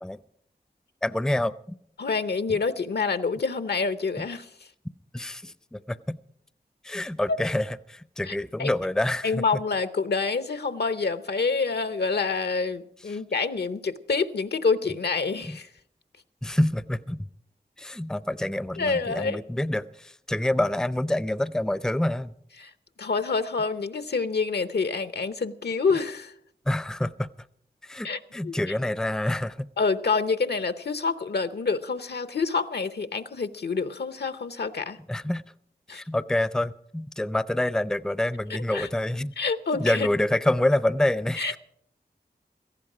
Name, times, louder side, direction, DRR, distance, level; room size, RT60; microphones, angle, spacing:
voice 1, 1.0-1.5 2.5-2.6 4.2-4.3 5.1-6.2 6.8-9.4 15.5-15.6 16.4-17.3 17.8-22.3 26.7-27.3 27.8-29.7 35.1-35.4 35.9-39.3 39.7-41.6, left 1 dB, 5° left, 16 dB, 0.5 m, -27 dB
voice 2, 2.0-4.5 7.3-7.4 8.3-8.7 9.2-15.7 18.8-19.4 22.6-22.7 23.0-26.3 28.0-28.6 29.8-35.0 35.9-36.0 38.7-38.9 39.4-40.1 41.4-41.6, left 4 dB, 75° left, 13 dB, 0.8 m, -27 dB
17.0 x 14.5 x 4.9 m, 0.68 s
cardioid pair, 45°, 17 cm